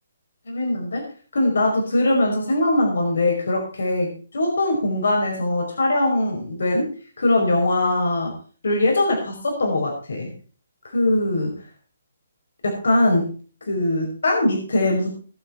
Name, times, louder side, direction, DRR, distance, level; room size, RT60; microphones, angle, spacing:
voice 1, 0.5-1.0 1.3-6.9 7.2-8.3 8.6-10.3 10.9-11.5 12.6-13.3 13.7-15.2, left 1 dB, 75° left, 1 dB, 5.2 m, -21 dB
19.5 x 8.6 x 4.5 m, 0.40 s
hypercardioid pair, 170°, 0 cm